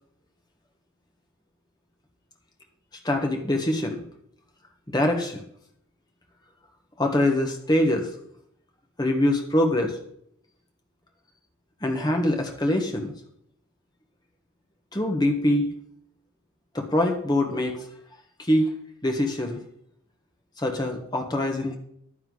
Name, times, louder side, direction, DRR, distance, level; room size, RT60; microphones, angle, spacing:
voice 1, 3.0-4.0 4.9-5.4 7.0-8.1 9.0-10.0 11.8-13.1 14.9-15.7 16.7-17.8 18.4-18.7 19.0-19.6 20.6-21.8, left 1 dB, 20° left, 2 dB, 1.5 m, -24 dB
10.5 x 9.7 x 4.0 m, 0.70 s
head